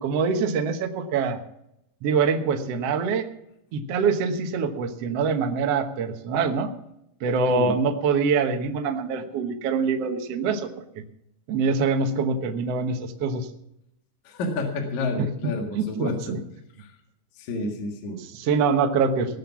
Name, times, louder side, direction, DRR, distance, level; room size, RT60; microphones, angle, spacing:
voice 1, 0.0-1.4 2.0-3.3 3.7-6.7 7.2-10.7 11.5-13.5 15.2-16.4 18.2-19.4, right 5 dB, 65° right, 5 dB, 1.5 m, -24 dB
voice 2, 14.2-16.4 16.8-16.9 17.4-18.2, left 2 dB, 55° left, 2 dB, 2.9 m, -30 dB
19.0 x 6.7 x 7.1 m, 0.79 s
omnidirectional pair, 4.5 m